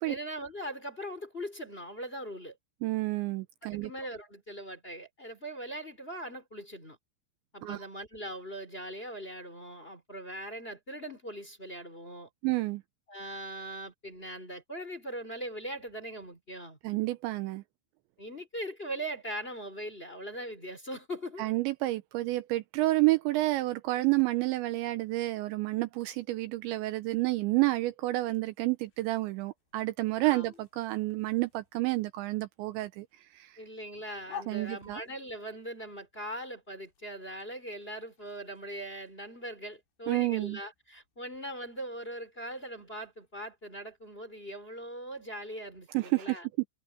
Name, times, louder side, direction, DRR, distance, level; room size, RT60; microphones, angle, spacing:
voice 1, 0.0-2.5 3.7-7.0 7.5-12.3 13.1-16.8 18.2-21.5 30.2-30.5 33.6-46.5, right 1 dB, 15° left, 3.2 m, -40 dB
voice 2, 2.8-3.9 7.6-7.9 12.4-12.8 16.8-17.6 21.4-33.1 33.3-33.6 34.5-35.0 40.1-40.6 45.9-46.4, right 19 dB, 85° right, 2.7 m, -30 dB
sound 1, 28.8-45.6, left 7 dB, 55° left, 4.7 m, -55 dB
omnidirectional pair, 5.9 m